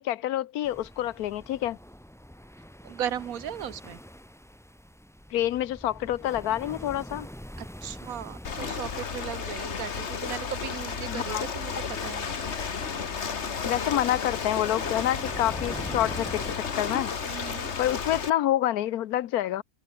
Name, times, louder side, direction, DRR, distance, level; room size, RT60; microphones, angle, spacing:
voice 1, 0.0-1.8 5.3-7.3 11.1-11.4 13.7-17.1 17.8-19.6, left 13 dB, 85° left, 1.3 m, -27 dB
sound 1, 0.6-16.5, equal, ahead, 1.1 m, -45 dB
voice 2, 2.8-4.0 7.6-12.4 17.2-17.7, right 10 dB, 75° right, 1.4 m, -37 dB
Ocean, 8.4-18.3, left 6 dB, 50° left, 1.7 m, -33 dB
omnidirectional pair, 1.5 m